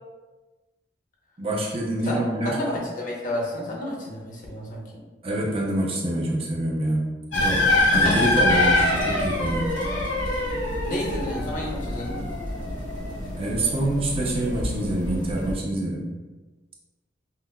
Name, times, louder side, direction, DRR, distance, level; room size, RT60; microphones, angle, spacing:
voice 1, 1.4-2.5 5.2-7.1 7.3-7.6 7.9-9.7 13.4-16.1, right 1 dB, 30° right, -3 dB, 0.6 m, -26 dB
voice 2, 2.4-4.8 10.8-12.3, left 1 dB, 45° left, -2 dB, 0.8 m, -31 dB
sound 1, 7.3-15.5, left 2 dB, 85° left, 1.1 m, -25 dB
5.5 x 2.1 x 2.2 m, 1.2 s
head